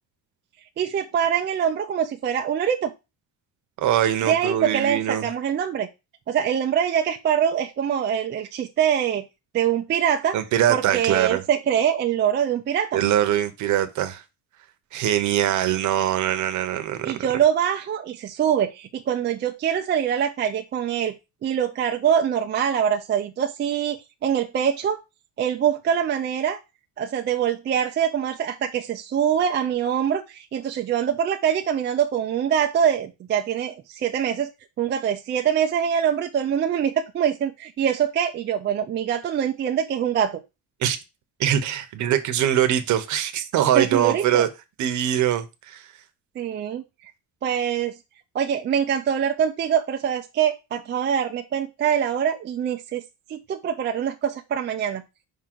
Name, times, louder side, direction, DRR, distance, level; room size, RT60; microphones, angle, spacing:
voice 1, 0.8-2.9 4.3-5.9 6.3-9.2 9.5-10.4 10.7-13.0 17.0-21.1 21.4-24.0 24.2-25.0 25.4-26.6 27.0-34.5 34.8-40.4 42.1-42.2 43.8-44.5 46.4-46.8 47.4-47.9 48.3-53.0 53.3-55.0, right 8 dB, 30° right, 0.5 m, -24 dB
voice 2, 3.8-5.3 10.3-11.4 12.9-14.2 14.9-17.0 40.8-41.0 41.4-44.5 44.8-45.9, right 11 dB, 50° right, 1.0 m, -22 dB
5.5 x 3.8 x 6.0 m
cardioid pair, 170°, 36 cm